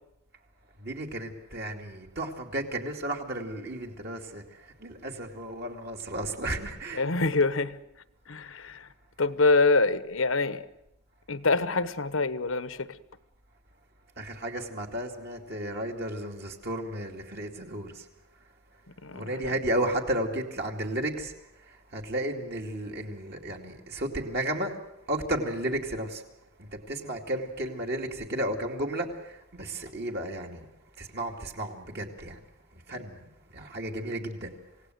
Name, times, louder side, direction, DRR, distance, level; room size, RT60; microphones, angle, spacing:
voice 1, 0.8-7.0 14.2-18.0 19.1-21.3 21.7-24.8 25.1-26.2 26.6-30.7 31.0-32.4 32.9-33.3 33.5-34.5, right 1 dB, 50° right, 2.5 m, -33 dB
voice 2, 6.9-7.8 8.3-8.9 9.2-10.6 11.3-12.9 19.0-19.5, left 3 dB, 80° left, 1.1 m, -25 dB
27.0 x 17.0 x 7.9 m
head